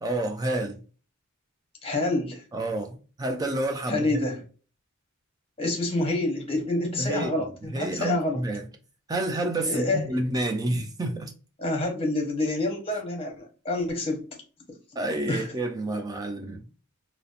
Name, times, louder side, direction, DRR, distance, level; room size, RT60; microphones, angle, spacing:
voice 1, 0.0-0.8 2.5-4.2 7.0-7.3 7.7-8.7 9.1-11.3 15.0-16.6, right 1 dB, 15° right, 0.3 m, -29 dB
voice 2, 1.8-2.4 3.9-4.4 5.6-8.4 9.6-10.0 11.6-14.2 15.3-15.5, left 2 dB, 25° left, 0.7 m, -27 dB
2.8 x 2.0 x 2.4 m
head